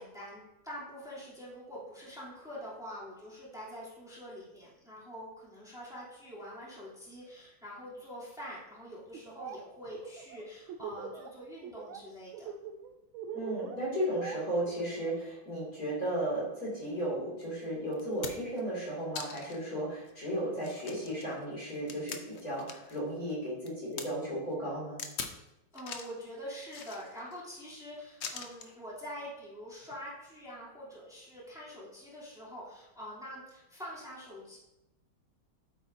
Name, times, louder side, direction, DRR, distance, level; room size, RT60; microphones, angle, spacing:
voice 1, 0.0-12.5 25.7-34.6, equal, ahead, -8 dB, 3.1 m, -45 dB
Laughter, 9.1-9.6 9.9-11.3 11.6-12.0 12.3-15.2, right 7 dB, 85° right, 1.5 m, -42 dB
voice 2, 13.3-25.0, right 1 dB, 45° left, -6 dB, 3.1 m, -35 dB
sound 1, 17.4-17.5 17.9-18.6 19.1-19.6 20.1-20.2 20.6-23.0 23.3-24.1 25.0-25.4 25.7-26.2 26.7-27.4 28.2-28.7 29.8-30.0, left 6 dB, 80° left, 0.6 m, -42 dB
9.1 x 8.1 x 2.7 m, 0.93 s
omnidirectional pair, 2.2 m